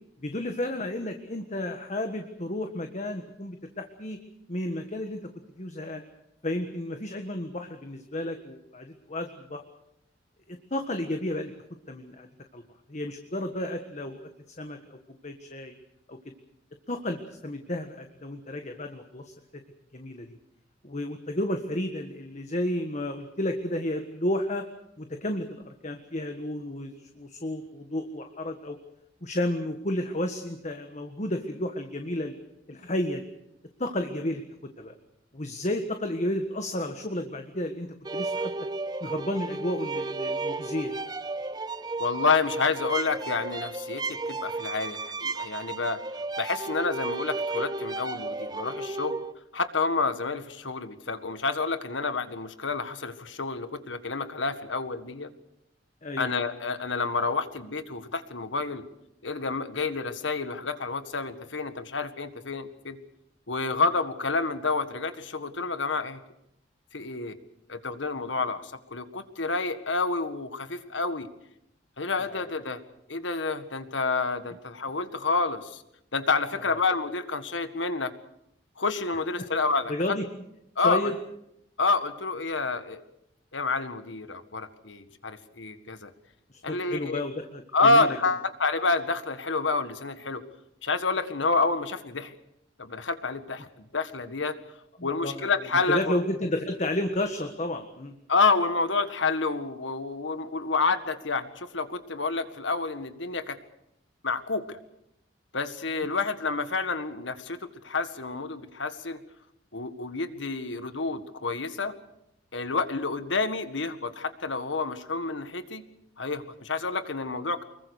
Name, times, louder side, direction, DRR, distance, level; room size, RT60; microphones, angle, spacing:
voice 1, 0.2-4.2 4.5-5.2 5.6-6.0 6.4-9.6 10.5-11.5 11.9-12.3 12.5-12.6 12.9-14.2 14.6-15.0 15.2-15.7 16.1-16.3 16.9-19.6 19.9-20.4 20.8-24.7 25.0-28.8 29.2-32.3 32.7-33.3 33.8-34.9 35.3-38.5 39.0-40.9 56.0-56.3 72.3-72.5 76.6-76.8 79.4-79.5 79.9-80.2 80.8-81.2 86.5-88.2 95.0-98.1, left 1 dB, 40° left, 5 dB, 1.5 m, -32 dB
sound 1, 38.0-49.3, right 3 dB, 20° right, 0.8 m, -33 dB
voice 2, 42.0-46.0 46.4-49.2 49.5-55.3 56.2-58.8 59.2-63.0 63.5-66.2 66.9-67.4 67.7-71.3 72.0-72.8 73.1-75.8 76.1-78.1 78.8-80.2 80.8-81.1 81.8-83.0 83.5-86.1 86.6-87.2 87.7-90.4 90.8-92.3 92.8-94.6 95.0-96.2 98.3-103.6 104.2-104.8 105.5-109.2 109.7-112.0 112.5-115.8 116.2-117.6, left 3 dB, 80° left, 10 dB, 1.8 m, -29 dB
25.0 x 22.0 x 6.5 m, 0.80 s
head